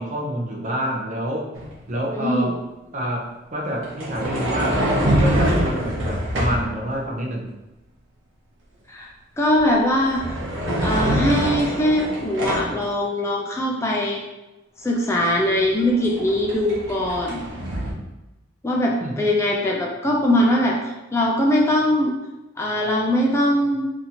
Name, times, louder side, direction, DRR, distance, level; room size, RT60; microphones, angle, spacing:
voice 1, 0.0-1.5 1.9-2.5 2.9-4.8 5.1-7.5 19.0-19.1, equal, 40° right, -1 dB, 0.7 m, -27 dB
sound 1, 1.5-1.7 3.8-6.7 9.4-9.6 10.0-12.8 15.2-15.3 15.6-17.9, equal, 85° right, 0.7 m, -24 dB
voice 2, 2.1-2.5 8.9-9.1 9.4-10.4 10.8-14.2 14.8-17.4 18.6-20.8 21.1-22.2 22.6-23.9, left 1 dB, 15° left, -2 dB, 0.3 m, -21 dB
2.8 x 2.5 x 4.1 m, 1.0 s
head